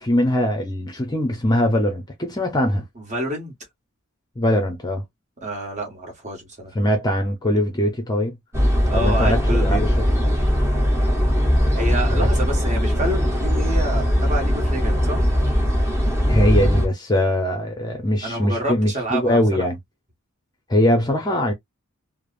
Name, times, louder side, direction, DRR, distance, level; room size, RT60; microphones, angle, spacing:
voice 1, 0.0-2.9 4.4-5.1 6.7-8.4 8.9-9.9 12.1-12.3 16.3-19.8 20.7-21.5, left 1 dB, 20° left, 0.6 m, -21 dB
voice 2, 3.0-3.5 5.4-6.7 8.9-9.8 11.7-15.2 18.2-19.7, right 1 dB, 35° right, 1.4 m, -28 dB
sound 1, 8.5-16.9, equal, 10° right, 0.8 m, -20 dB
3.2 x 2.0 x 2.4 m
head